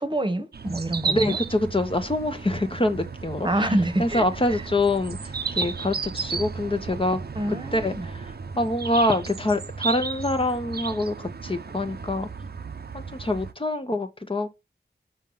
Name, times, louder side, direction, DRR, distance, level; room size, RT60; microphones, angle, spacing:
voice 1, 0.0-1.4 3.4-4.6 7.3-8.1, right 1 dB, 25° right, 1.1 m, -27 dB
sound 1, 0.5-13.5, right 5 dB, 55° right, 0.7 m, -34 dB
voice 2, 1.1-3.7 4.0-7.2 7.5-12.3 12.9-14.5, left 1 dB, 30° left, 1.0 m, -26 dB
5.6 x 3.6 x 5.4 m
cardioid pair, 50°, 19 cm